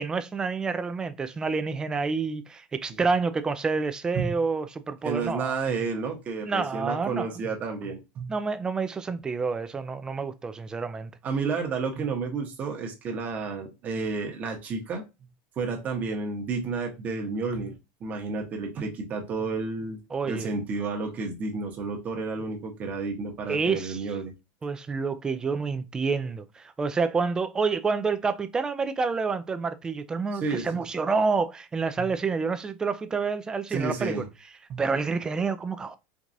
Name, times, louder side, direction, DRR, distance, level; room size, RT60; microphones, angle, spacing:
voice 1, 0.0-5.6 6.5-7.3 8.3-11.1 20.1-20.5 23.5-24.1 24.6-34.2 34.8-36.0, right 4 dB, 15° right, 0.3 m, -28 dB
voice 2, 5.0-8.3 11.2-15.0 15.6-17.7 18.0-20.0 20.2-24.3 30.4-30.8 32.0-32.1 33.7-34.3 34.7-34.8, right 4 dB, 30° right, 1.0 m, -31 dB
4.5 x 2.4 x 2.6 m
supercardioid pair, 155°, 6 cm